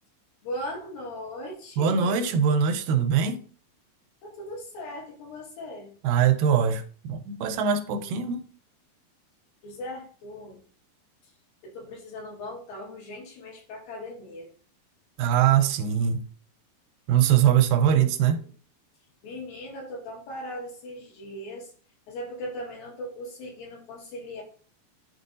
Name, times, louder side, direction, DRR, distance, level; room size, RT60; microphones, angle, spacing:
voice 1, 0.4-2.3 4.2-5.9 9.6-10.6 11.6-14.5 17.9-18.3 19.2-21.7 22.1-24.4, left 1 dB, 85° left, 3.5 m, -38 dB
voice 2, 1.8-3.4 6.0-8.4 15.2-16.3 17.1-18.4, right 8 dB, 85° right, 2.3 m, -22 dB
11.0 x 3.7 x 2.7 m
omnidirectional pair, 4.0 m